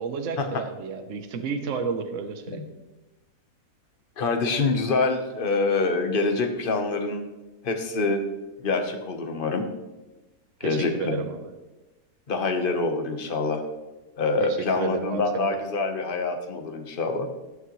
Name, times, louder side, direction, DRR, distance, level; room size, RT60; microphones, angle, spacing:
voice 1, 0.0-2.6 10.6-11.5 14.4-15.6, right 5 dB, 60° right, 7 dB, 1.2 m, -31 dB
voice 2, 4.2-7.2 7.6-8.2 8.6-9.6 10.6-11.2 12.3-13.6 14.2-17.3, left 3 dB, 40° left, 5 dB, 1.2 m, -25 dB
18.5 x 6.5 x 3.1 m, 1.1 s
omnidirectional pair, 1.6 m